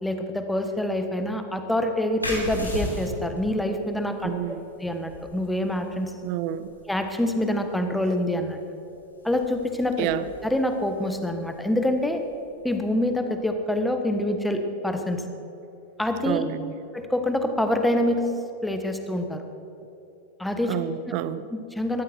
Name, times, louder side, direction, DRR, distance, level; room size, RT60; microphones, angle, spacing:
voice 1, 0.0-4.3 4.8-6.1 6.9-8.6 9.2-10.1 10.4-12.2 12.6-15.2 16.0-16.4 16.9-18.3 18.6-19.4 20.4-20.8 21.0-21.1 21.5-22.0, left 1 dB, 5° left, 6 dB, 1.4 m, -26 dB
sound 1, 2.2-13.5, left 1 dB, 85° left, 3.2 m, -39 dB
voice 2, 4.2-4.6 6.2-6.7 10.0-10.2 16.3-16.7 20.7-21.5, right 12 dB, 45° right, 15 dB, 0.6 m, -29 dB
19.0 x 13.5 x 4.6 m, 2.9 s
figure-of-eight pair, 90°, 0 cm